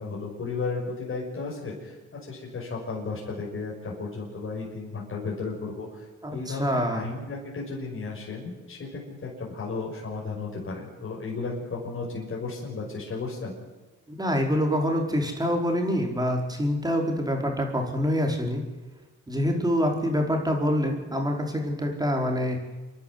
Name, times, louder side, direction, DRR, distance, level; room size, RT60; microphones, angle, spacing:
voice 1, 0.0-13.5, left 4 dB, 40° left, -3 dB, 6.1 m, -34 dB
voice 2, 6.5-7.0 14.1-18.6 19.3-22.6, equal, 15° right, 2 dB, 4.9 m, -26 dB
27.5 x 11.5 x 9.7 m, 1.2 s
cardioid pair, 90°, 30 cm